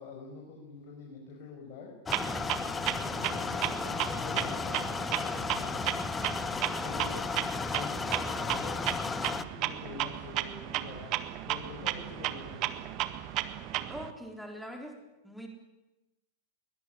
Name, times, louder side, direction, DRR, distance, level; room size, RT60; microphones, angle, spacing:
voice 1, 0.0-1.9 3.1-6.2 6.8-7.3 7.7-12.9, left 4 dB, 45° left, 0 dB, 6.0 m, -46 dB
sound 1, 2.1-9.4, left 5 dB, 15° left, 1.0 m, -34 dB
Clock, 2.1-14.1, right 14 dB, 40° right, 1.5 m, -34 dB
voice 2, 13.9-15.0 15.2-15.5, equal, ahead, 3 dB, 3.9 m, -42 dB
22.0 x 19.5 x 10.0 m, 1.0 s
figure-of-eight pair, 95°, 0 cm